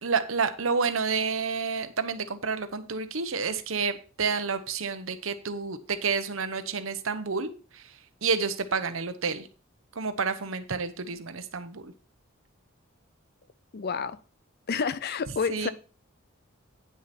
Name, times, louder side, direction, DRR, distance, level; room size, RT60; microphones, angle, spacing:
voice 1, 0.0-9.5 9.9-11.9 15.5-15.7, right 5 dB, 75° right, 1.0 m, -30 dB
voice 2, 13.7-14.2 14.7-15.7, left 5 dB, 50° left, 0.5 m, -29 dB
9.7 x 6.5 x 4.3 m
head